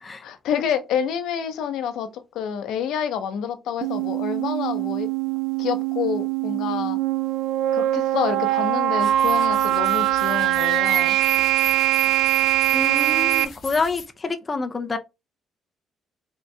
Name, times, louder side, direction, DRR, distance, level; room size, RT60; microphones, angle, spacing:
voice 1, 0.2-5.1 5.6-7.0 7.7-11.2, left 8 dB, 75° left, 0.6 m, -28 dB
sound 1, 3.8-13.4, right 13 dB, 70° right, 0.3 m, -22 dB
sound 2, 9.0-14.1, left 5 dB, 45° left, 1.0 m, -39 dB
voice 2, 12.7-15.0, left 4 dB, 20° left, 0.5 m, -27 dB
3.7 x 2.6 x 3.2 m
cardioid pair, 155°, 0 cm